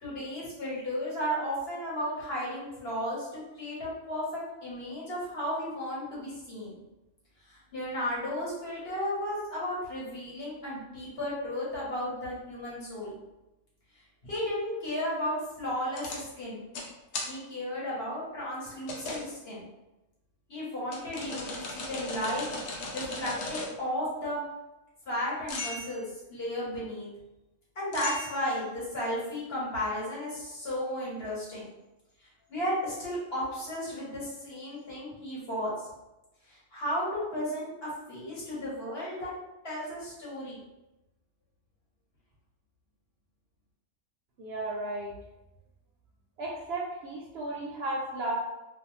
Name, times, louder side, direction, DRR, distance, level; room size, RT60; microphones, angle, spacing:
voice 1, 0.0-6.8 7.5-13.2 14.2-16.6 17.3-19.7 20.5-24.4 25.1-27.1 27.7-31.7 32.2-35.7 36.4-39.3 39.6-40.6, equal, 50° left, -7 dB, 1.1 m, -34 dB
sound 1, 16.0-16.2 16.7-16.9 17.1-17.3 18.9-19.3 20.9-23.8 25.5-25.9 27.9-28.6, left 2 dB, 85° left, 1.0 m, -37 dB
voice 2, 44.4-45.1 46.4-48.4, right 2 dB, 65° right, -4 dB, 0.7 m, -34 dB
2.5 x 2.1 x 3.0 m, 0.97 s
omnidirectional pair, 1.4 m